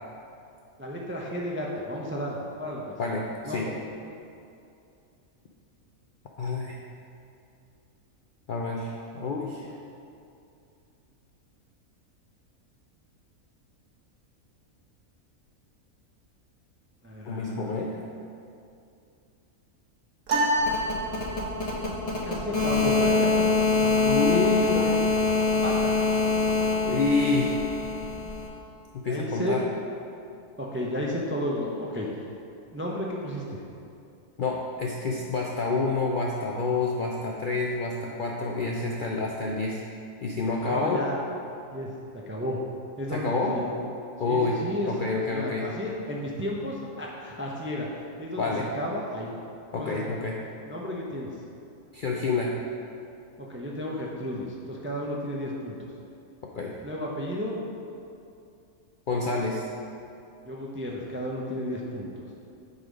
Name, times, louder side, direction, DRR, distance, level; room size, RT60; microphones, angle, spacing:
voice 1, 0.8-3.0 3.4-3.8 17.0-17.8 22.1-23.4 23.8-24.0 25.6-26.0 29.1-29.6 30.6-32.1 32.7-33.6 40.6-41.2 41.7-42.6 43.0-43.7 44.2-44.9 45.3-47.9 48.2-49.4 49.8-50.0 50.7-51.3 53.4-55.9 56.8-57.6 60.4-62.1, left 1 dB, 20° right, -2 dB, 0.3 m, -33 dB
voice 2, 3.0-3.7 6.4-6.8 8.5-9.8 17.3-18.0 24.0-25.0 26.9-27.5 28.9-29.6 34.4-39.8 40.2-41.0 43.1-43.5 44.2-44.6 44.9-45.7 48.4-48.7 49.7-50.4 51.9-52.6 56.5-56.7 59.1-59.7, left 3 dB, 60° left, -2 dB, 0.5 m, -28 dB
sound 1, 20.3-21.7, right 1 dB, 70° right, 1.5 m, -27 dB
sound 2, 20.6-28.5, left 3 dB, 30° left, 1.2 m, -25 dB
7.9 x 4.1 x 5.1 m, 2.6 s
omnidirectional pair, 1.5 m